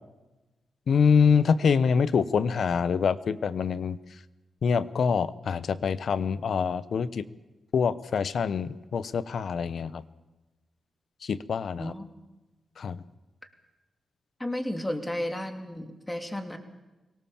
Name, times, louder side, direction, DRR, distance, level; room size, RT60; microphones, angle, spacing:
voice 1, 0.9-4.0 4.6-7.3 7.7-10.0 11.2-11.9 12.8-13.0, left 6 dB, 70° left, 16 dB, 0.9 m, -25 dB
voice 2, 14.4-16.6, left 1 dB, 15° left, 6 dB, 3.1 m, -33 dB
24.5 x 18.0 x 7.3 m, 1.1 s
cardioid pair, 60°, 0 cm